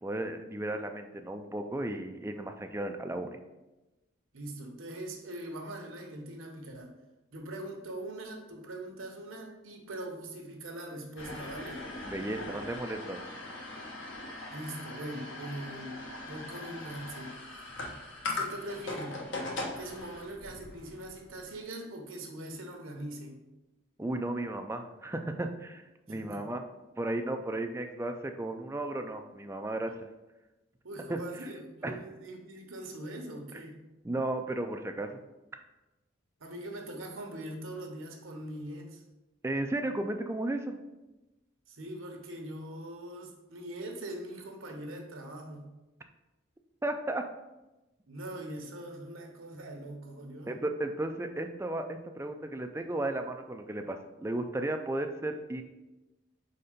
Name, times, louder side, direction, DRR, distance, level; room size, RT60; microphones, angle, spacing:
voice 1, 0.0-3.4 12.1-13.2 24.0-26.7 27.0-30.1 31.1-31.2 31.8-32.0 33.5-33.6 34.0-35.2 39.4-40.8 46.8-47.2 50.5-55.6, right 1 dB, 15° right, 5 dB, 0.3 m, -34 dB
voice 2, 4.3-6.9 7.3-11.9 14.5-17.6 18.3-19.3 19.8-23.4 26.1-26.4 30.8-33.8 36.4-39.0 41.7-45.7 48.1-50.5, right 1 dB, 80° right, 3 dB, 1.1 m, -42 dB
sound 1, 11.2-21.5, left 2 dB, 65° left, 1.1 m, -40 dB
4.6 x 4.3 x 5.1 m, 1.0 s
head